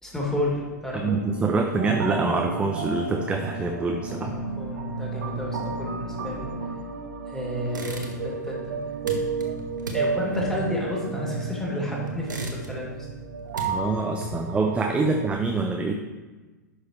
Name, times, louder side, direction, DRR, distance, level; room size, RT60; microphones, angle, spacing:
voice 1, 0.0-1.2 4.2-6.5 7.3-8.7 9.7-12.9, left 1 dB, 5° left, -4 dB, 2.7 m, -31 dB
sound 1, 1.0-6.8, right 1 dB, 75° left, 1.5 m, -37 dB
voice 2, 1.0-4.3 13.7-15.9, right 3 dB, 10° right, 4 dB, 0.7 m, -25 dB
sound 2, 1.8-15.3, right 5 dB, 65° right, 1.0 m, -33 dB
sound 3, 7.7-8.5 8.7-11.6 12.1-13.0 13.3-14.6, right 1 dB, 80° right, 1.5 m, -37 dB
11.0 x 6.5 x 3.2 m, 1.3 s
figure-of-eight pair, 100°, 10 cm